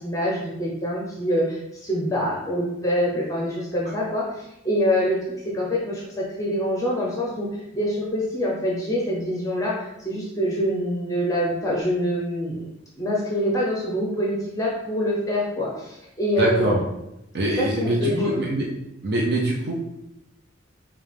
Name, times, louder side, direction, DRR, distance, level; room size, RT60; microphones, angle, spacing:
voice 1, 0.0-5.2 5.4-7.5 7.7-12.7 13.0-16.8 17.5-18.4, equal, 15° left, -4 dB, 0.6 m, -25 dB
voice 2, 16.4-16.8 17.3-18.7 19.0-19.7, right 1 dB, 55° right, -3 dB, 0.6 m, -23 dB
5.2 x 2.3 x 3.3 m, 0.86 s
head